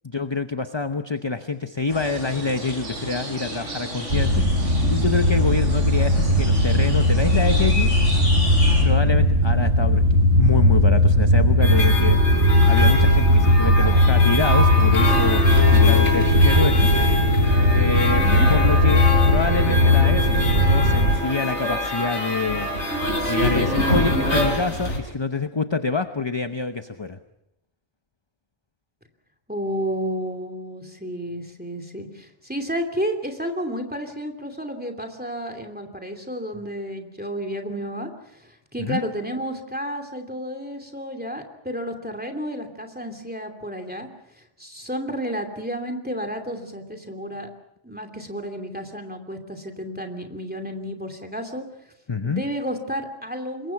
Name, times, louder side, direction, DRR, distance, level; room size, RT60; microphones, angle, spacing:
voice 1, 0.0-4.4 4.9-7.9 8.8-10.0 10.4-12.2 12.7-16.9 17.7-18.2 18.5-22.7 23.3-27.2 38.8-39.0 52.1-52.4, left 4 dB, 25° left, 8 dB, 0.8 m, -26 dB
sound 1, 1.9-8.8, equal, 85° right, 6.2 m, -32 dB
sound 2, 4.1-21.2, left 1 dB, 60° right, 1.8 m, -18 dB
sound 3, 11.6-25.0, left 1 dB, 70° left, 4.6 m, -25 dB
voice 2, 29.5-44.1 44.4-47.5 47.8-51.6 52.2-53.7, equal, 5° right, 6 dB, 2.8 m, -31 dB
27.0 x 22.5 x 5.8 m, 0.82 s
omnidirectional pair, 1.2 m